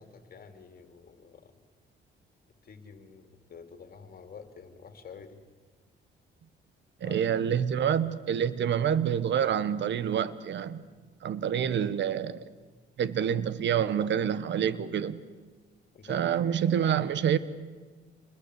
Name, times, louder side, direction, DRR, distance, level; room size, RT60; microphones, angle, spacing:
voice 1, 0.0-1.5 2.6-5.4 7.0-7.3 8.6-8.8 11.8-11.9 15.9-16.4, left 6 dB, 50° left, 7 dB, 3.4 m, -49 dB
voice 2, 7.0-10.8 11.2-12.5 13.0-15.2 16.1-17.4, right 8 dB, 65° right, 15 dB, 1.4 m, -27 dB
27.0 x 21.5 x 8.3 m, 1.4 s
cardioid pair, 90°, 20 cm